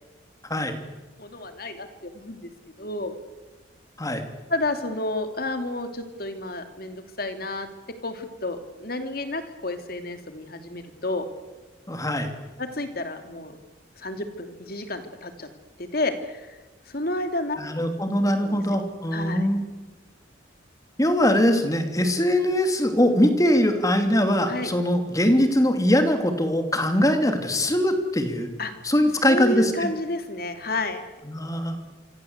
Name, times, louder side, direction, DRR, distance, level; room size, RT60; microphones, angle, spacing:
voice 1, 1.2-2.5 2.8-3.1 4.5-7.7 8.0-11.3 12.6-13.6 14.0-15.5 15.8-16.6 16.9-17.6 18.4-18.8 19.1-19.5 24.5-24.7 28.6-28.7 29.2-31.1, left 2 dB, 50° left, 7 dB, 2.9 m, -30 dB
voice 2, 11.9-12.3 17.6-19.6 21.0-28.5 28.8-29.9 31.3-31.8, left 1 dB, 20° left, 6 dB, 3.0 m, -22 dB
26.5 x 25.5 x 8.2 m, 1.2 s
head